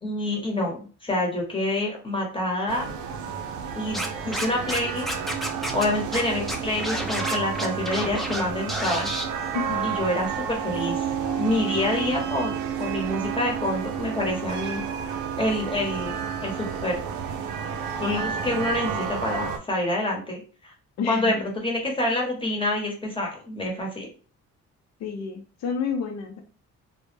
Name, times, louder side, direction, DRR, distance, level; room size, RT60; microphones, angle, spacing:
voice 1, 0.0-2.9 3.7-5.1 5.7-9.1 9.8-11.1 11.4-14.8 15.4-17.0 18.0-20.7 21.1-24.1, left 1 dB, 15° left, -1 dB, 1.0 m, -27 dB
sound 1, 2.7-19.6, right 7 dB, 75° right, 0.5 m, -31 dB
Scratching (performance technique), 3.9-4.8 5.1-5.8 6.1-6.2 6.5-8.4 8.7-9.2, equal, ahead, 0.4 m, -30 dB
voice 2, 9.5-9.9 21.0-21.4 25.0-26.4, left 6 dB, 60° left, 4 dB, 0.5 m, -30 dB
2.1 x 2.1 x 3.1 m, 0.37 s
cardioid pair, 90°, 30 cm